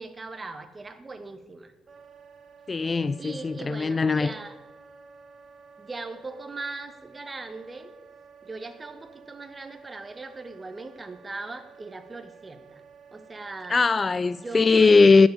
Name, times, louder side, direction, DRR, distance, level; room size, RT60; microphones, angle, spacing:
voice 1, 0.0-1.7 3.2-4.6 5.8-7.9 8.4-12.8 13.1-13.8 14.3-14.9, right 3 dB, 25° right, 1.4 m, -39 dB
Wind instrument woodwind instrument, 1.9-14.7, right 6 dB, 50° right, 1.3 m, -52 dB
voice 2, 2.7-4.3 13.7-15.3, left 4 dB, 30° left, 0.3 m, -19 dB
12.5 x 7.1 x 9.8 m
cardioid pair, 90°, 0 cm